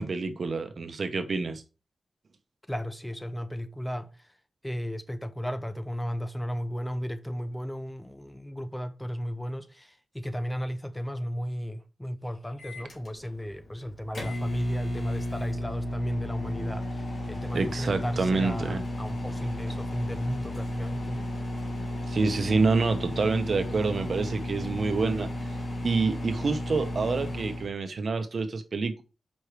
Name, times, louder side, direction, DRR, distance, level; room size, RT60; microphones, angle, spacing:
voice 1, 0.0-1.6 17.5-18.8 19.7-19.8 22.1-25.3 25.8-29.0, right 4 dB, 50° right, 0.9 m, -27 dB
voice 2, 2.7-4.3 4.6-21.2, equal, 5° left, 0.5 m, -35 dB
Microwave oven, 12.6-27.7, equal, 50° left, 2.7 m, -33 dB
5.3 x 5.0 x 4.6 m
wide cardioid pair, 170°, 0 cm